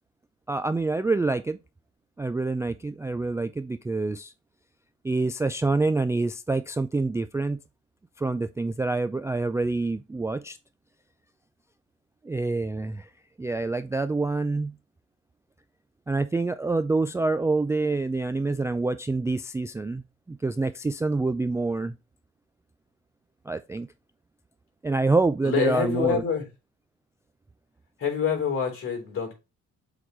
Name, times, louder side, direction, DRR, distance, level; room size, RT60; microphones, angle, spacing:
voice 1, 0.5-1.6 2.2-4.3 5.0-7.6 8.2-10.6 12.2-13.1 13.4-14.8 16.1-20.0 20.3-22.0 23.5-23.9 24.8-26.2, right 3 dB, 10° right, 0.3 m, -26 dB
voice 2, 25.4-26.5 28.0-29.4, left 6 dB, 45° left, 3.6 m, -26 dB
7.7 x 4.1 x 3.1 m
cardioid pair, 90°, 30 cm